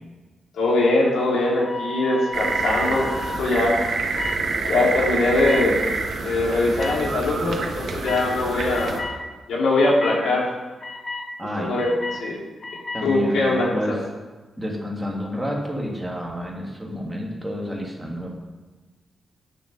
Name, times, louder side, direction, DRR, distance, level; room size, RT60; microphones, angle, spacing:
voice 1, 0.5-3.1 3.4-3.8 4.7-5.8 6.2-9.1 9.5-10.5 11.6-12.4 13.0-14.0, left 2 dB, 85° left, -4 dB, 3.3 m, -21 dB
sound 1, 1.6-3.4 4.2-4.4 5.4-5.6 6.8-6.9 8.1-8.3 8.7-9.2 9.7-10.2 10.8-11.2 11.8-12.2 12.6-13.0, left 2 dB, 35° left, 1.4 m, -32 dB
sound 2, 2.3-9.0, right 3 dB, 55° right, 1.4 m, -27 dB
voice 2, 11.4-11.8 12.9-14.0 14.6-18.3, left 1 dB, 5° right, -2 dB, 2.0 m, -29 dB
9.6 x 7.8 x 6.6 m, 1.2 s
wide cardioid pair, 175°, 0 cm